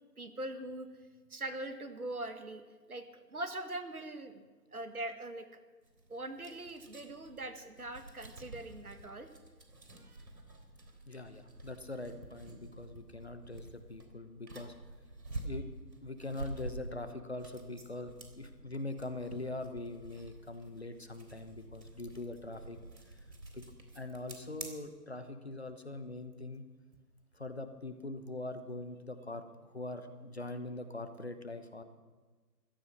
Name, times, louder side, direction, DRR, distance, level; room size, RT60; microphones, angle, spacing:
voice 1, 0.2-0.9 1.3-2.6 2.9-4.4 4.7-5.5 6.1-9.3 9.9-10.3, right 1 dB, 60° right, 8 dB, 1.9 m, -42 dB
sound 1, 5.8-24.7, right 2 dB, 80° right, 3.7 m, -49 dB
voice 2, 11.1-14.7 15.4-15.6 16.0-22.8 23.1-23.2 23.5-23.6 23.9-26.6 27.3-31.8, left 2 dB, 40° left, 9 dB, 1.1 m, -42 dB
15.5 x 13.0 x 6.4 m, 1.3 s
figure-of-eight pair, 170°, 49 cm